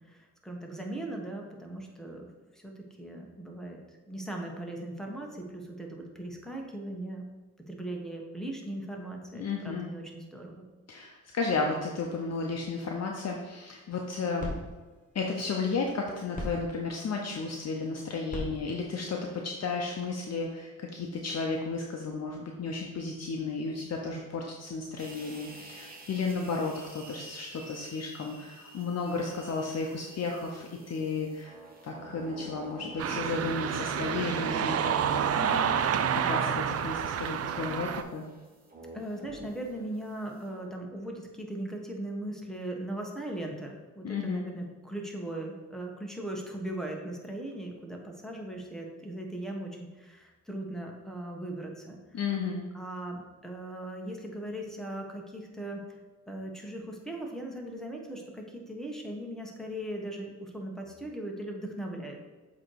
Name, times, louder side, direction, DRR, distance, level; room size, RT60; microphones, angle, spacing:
voice 1, 0.0-2.3 2.5-3.8 4.1-7.3 7.7-10.6 35.4-35.8 38.9-52.2 52.7-55.8 56.3-62.2, right 1 dB, ahead, -1 dB, 1.2 m, -39 dB
voice 2, 9.3-9.9 10.9-14.5 15.1-31.6 31.8-35.3 36.1-38.2 44.0-44.5 52.1-52.6, left 4 dB, 50° left, 0 dB, 0.8 m, -33 dB
sound 1, 13.8-20.2, left 1 dB, 25° left, 1.9 m, -44 dB
sound 2, 25.0-40.7, right 1 dB, 25° right, 1.3 m, -48 dB
sound 3, 33.0-38.0, right 8 dB, 50° right, 0.4 m, -29 dB
7.5 x 3.1 x 4.6 m, 1.3 s
cardioid pair, 75°, 33 cm